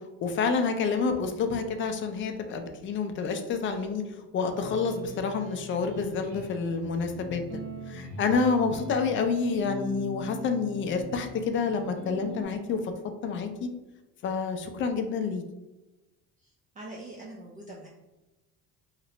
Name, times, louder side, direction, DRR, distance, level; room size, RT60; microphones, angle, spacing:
voice 1, 0.2-7.6 7.9-12.8 13.2-13.7 14.2-15.4, left 5 dB, 40° left, 6 dB, 0.4 m, -28 dB
sound 1, 4.5-12.4, left 1 dB, 40° right, 0.8 m, -41 dB
voice 2, 16.8-17.9, right 2 dB, 25° right, -3 dB, 0.4 m, -43 dB
2.9 x 2.4 x 3.0 m, 1.1 s
cardioid pair, 130°, 30 cm